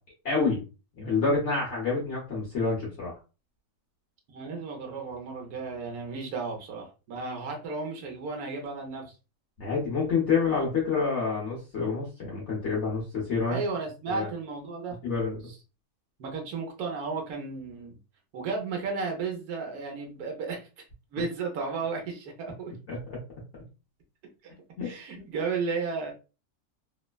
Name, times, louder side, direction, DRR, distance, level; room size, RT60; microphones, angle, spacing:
voice 1, 0.2-0.6 1.0-3.1 9.6-13.6 14.1-14.3 15.0-15.4 22.9-23.2 24.8-25.2, left 4 dB, 55° left, -4 dB, 1.1 m, -28 dB
voice 2, 4.3-9.1 13.5-15.0 16.2-18.0 18.3-20.7 21.1-22.7 24.8-26.1, right 4 dB, 85° right, 1 dB, 1.2 m, -33 dB
3.2 x 2.1 x 2.2 m, 0.32 s
omnidirectional pair, 1.6 m